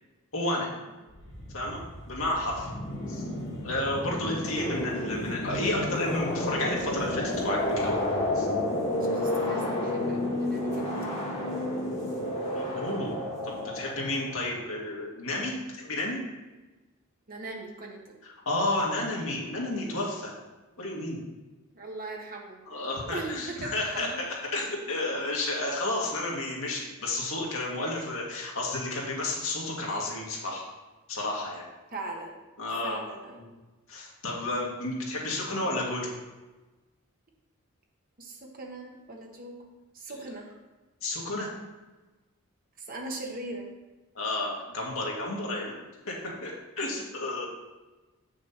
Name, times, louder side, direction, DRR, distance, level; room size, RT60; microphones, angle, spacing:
voice 1, 0.3-0.7 1.5-1.8 2.1-2.7 3.1-3.2 3.6-8.0 8.3-8.5 12.6-13.2 13.4-16.2 18.5-20.3 20.8-21.2 22.7-30.6 31.1-31.7 32.6-33.0 33.4-33.5 33.9-36.1 40.1-40.2 41.0-41.5 44.2-45.8 46.0-47.5, left 2 dB, 65° left, -3 dB, 2.1 m, -31 dB
sound 1, 1.1-14.5, left 1 dB, 30° left, 1.8 m, -31 dB
voice 2, 8.9-11.0 17.3-18.2 21.7-22.6 23.0-24.2 31.9-32.4 32.8-33.4 38.2-39.6 39.9-40.5 42.8-43.7, right 2 dB, 40° right, 0 dB, 1.3 m, -40 dB
8.3 x 6.2 x 4.3 m, 1.2 s
head